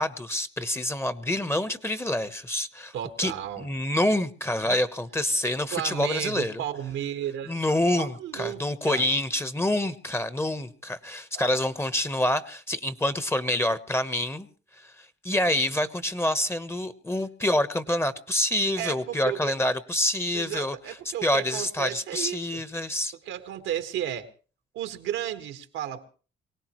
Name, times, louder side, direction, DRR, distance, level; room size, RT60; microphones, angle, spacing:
voice 1, 0.0-2.9 3.2-6.6 7.5-14.5 15.2-20.7 21.2-23.1, left 1 dB, 10° left, 13 dB, 1.1 m, -27 dB
voice 2, 2.9-3.7 4.6-4.8 5.7-9.0 11.3-11.5 18.8-19.5 20.3-22.6 23.3-24.3 24.7-26.1, right 11 dB, 90° right, 7 dB, 1.7 m, -33 dB
24.0 x 18.0 x 3.1 m, 0.38 s
cardioid pair, 90°, 20 cm